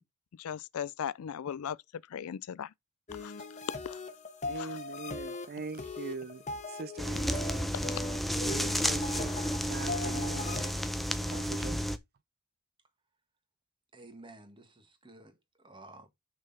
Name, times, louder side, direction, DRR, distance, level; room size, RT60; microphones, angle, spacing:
voice 1, 0.4-1.8 2.1-2.7 3.2-3.3 3.8-4.0 4.6-4.8 7.7-7.9, left 8 dB, 70° left, 0.4 m, -38 dB
sound 1, 3.1-10.7, left 3 dB, 30° left, 1.3 m, -40 dB
voice 2, 4.5-7.7 8.4-10.8 11.2-11.8, right 4 dB, 45° right, 0.5 m, -42 dB
sound 2, 7.0-12.0, equal, ahead, 0.6 m, -32 dB
voice 3, 13.9-16.1, right 2 dB, 20° right, 1.6 m, -53 dB
6.4 x 5.8 x 4.1 m
head